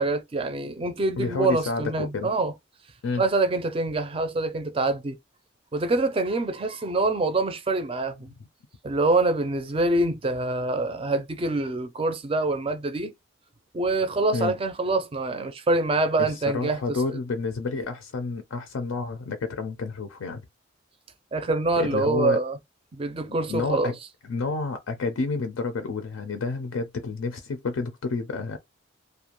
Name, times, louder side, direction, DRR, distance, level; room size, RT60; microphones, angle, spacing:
voice 1, 0.0-2.5 3.2-5.2 5.7-8.3 8.8-13.1 13.7-17.2 21.3-22.6 22.9-23.9, right 2 dB, 25° right, 0.4 m, -25 dB
voice 2, 1.2-2.3 3.0-3.2 14.3-14.6 16.2-20.4 21.8-22.4 23.3-23.9 24.3-28.6, left 4 dB, 80° left, 0.4 m, -30 dB
2.4 x 2.2 x 2.9 m
head